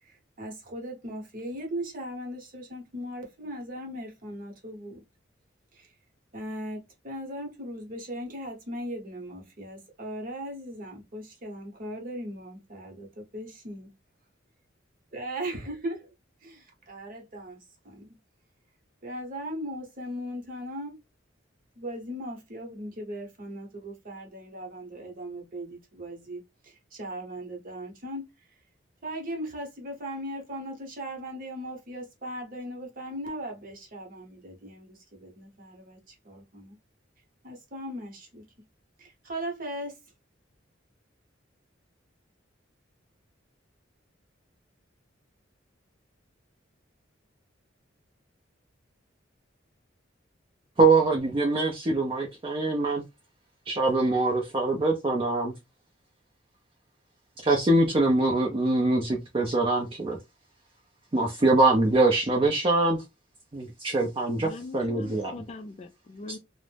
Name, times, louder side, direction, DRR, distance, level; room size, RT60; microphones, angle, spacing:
voice 1, 0.0-5.0 5.7-5.9 6.3-13.9 15.1-16.0 16.4-18.2 19.0-21.0 21.7-28.2 29.0-36.8 37.4-38.4 39.0-40.0, equal, 45° right, 0.9 m, -38 dB
voice 2, 50.8-53.0 53.7-55.5 57.4-60.2 61.1-63.0 63.5-65.3, right 2 dB, 25° right, 0.5 m, -23 dB
voice 3, 64.3-66.4, left 3 dB, 35° left, 0.3 m, -42 dB
2.5 x 2.1 x 3.2 m
head